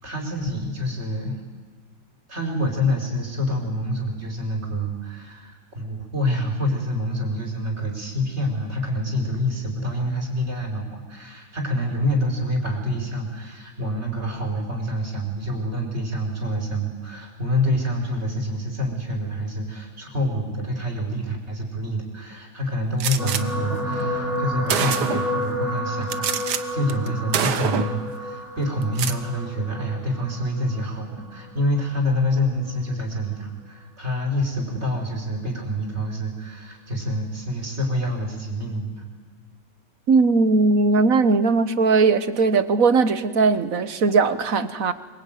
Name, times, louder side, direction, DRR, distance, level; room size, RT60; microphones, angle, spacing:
voice 1, 0.0-1.4 2.3-39.0, equal, 35° right, 2 dB, 5.2 m, -27 dB
Gunshot gunfire, 23.0-23.4 24.2-24.3 24.7-25.4 26.1-26.6 26.9-27.1 27.3-28.0 28.8-29.2, right 7 dB, 70° right, 1.7 m, -25 dB
sound 1, 23.2-31.6 32.4-32.6 32.9-33.0, left 1 dB, ahead, 6.0 m, -30 dB
voice 2, 40.1-44.9, right 4 dB, 55° right, 12 dB, 1.5 m, -19 dB
25.0 x 23.5 x 9.2 m, 1.5 s
omnidirectional pair, 1.9 m